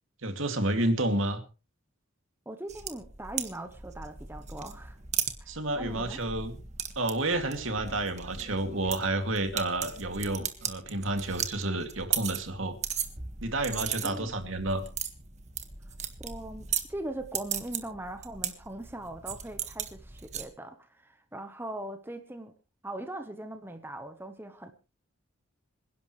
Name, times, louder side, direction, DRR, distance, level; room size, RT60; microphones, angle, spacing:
voice 1, 0.2-1.4 5.5-6.5 7.0-12.8 13.4-14.8, right 2 dB, 70° right, 2.5 m, -30 dB
voice 2, 2.5-5.0 5.4-6.2 14.0-14.5 16.2-22.5 22.8-24.7, right 1 dB, 10° right, 1.1 m, -40 dB
sound 1, 2.7-20.4, right 8 dB, 35° right, 1.7 m, -37 dB
26.5 x 11.0 x 3.2 m
head